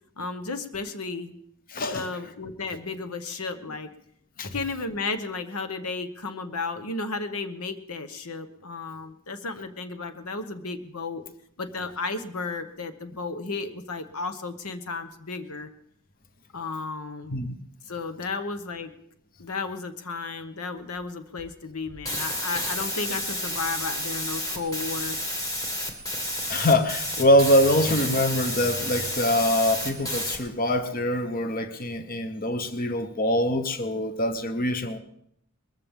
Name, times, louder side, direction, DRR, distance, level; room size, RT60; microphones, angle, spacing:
voice 1, 0.2-1.4 1.9-3.9 4.4-11.2 11.6-15.7 16.5-17.4 17.9-18.9 19.4-25.3, left 3 dB, 85° left, 9 dB, 1.1 m, -33 dB
voice 2, 1.7-2.1 4.4-4.5 17.3-17.5 26.5-35.0, left 1 dB, 40° left, 9 dB, 1.0 m, -24 dB
sound 1, 22.0-30.4, left 1 dB, 15° left, 2.0 m, -31 dB
21.0 x 14.0 x 3.7 m, 0.71 s
head